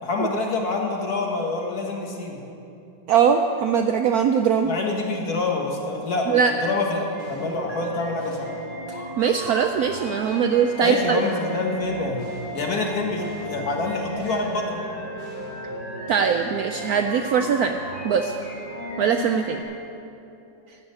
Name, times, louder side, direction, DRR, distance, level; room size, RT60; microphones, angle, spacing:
voice 1, 0.0-2.5 4.6-8.5 10.8-14.8, left 3 dB, 55° left, 0 dB, 1.9 m, -26 dB
voice 2, 3.1-4.7 6.3-6.5 8.9-11.2 16.1-17.8 18.0-18.3 19.0-19.6, right 7 dB, 75° right, 6 dB, 0.8 m, -21 dB
sound 1, 7.1-19.6, equal, 25° left, 3.4 m, -36 dB
14.0 x 5.6 x 8.8 m, 2.8 s
omnidirectional pair, 2.0 m